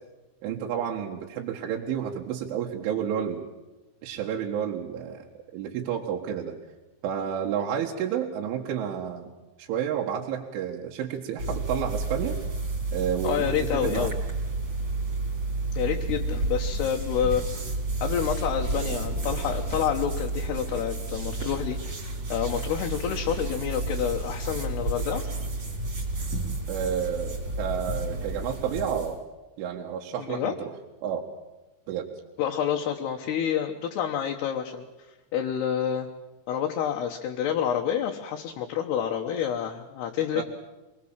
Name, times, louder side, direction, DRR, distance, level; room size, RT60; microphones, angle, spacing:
voice 1, 0.4-3.4 4.0-6.5 7.0-9.3 9.6-12.4 12.9-13.5 13.7-14.1 26.7-29.2 29.6-30.7 31.0-31.3 31.9-32.1 40.4-40.5, right 8 dB, 75° right, 0 dB, 3.9 m, -30 dB
sound 1, 11.4-29.2, right 2 dB, 35° right, 4.5 m, -31 dB
voice 2, 13.2-14.1 15.7-17.5 18.0-25.2 30.2-30.6 32.4-34.9 35.3-36.1 36.5-40.4, left 9 dB, 70° left, 2 dB, 2.8 m, -28 dB
25.5 x 19.5 x 7.4 m, 1.1 s
omnidirectional pair, 5.7 m